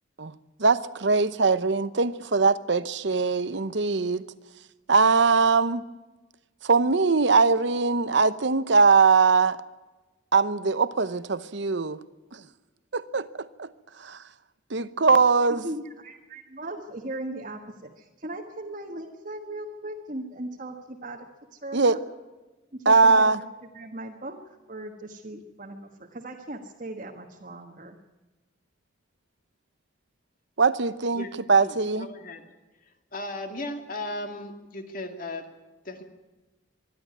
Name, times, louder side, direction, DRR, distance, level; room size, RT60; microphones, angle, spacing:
voice 1, 0.6-4.2 4.9-5.8 6.6-9.6 10.3-12.0 12.9-13.7 14.0-14.2 14.7-15.6 21.7-22.0 22.9-23.4 30.6-32.1, right 4 dB, 60° right, 15 dB, 0.8 m, -21 dB
voice 2, 15.5-21.2 21.5-22.0 22.7-23.5 23.7-24.4 24.7-28.0, right 1 dB, 40° right, 0 dB, 1.5 m, -38 dB
voice 3, 31.6-32.4 32.8-35.5 35.8-36.0, left 2 dB, 40° left, 5 dB, 2.3 m, -36 dB
25.0 x 11.5 x 9.5 m, 1.2 s
head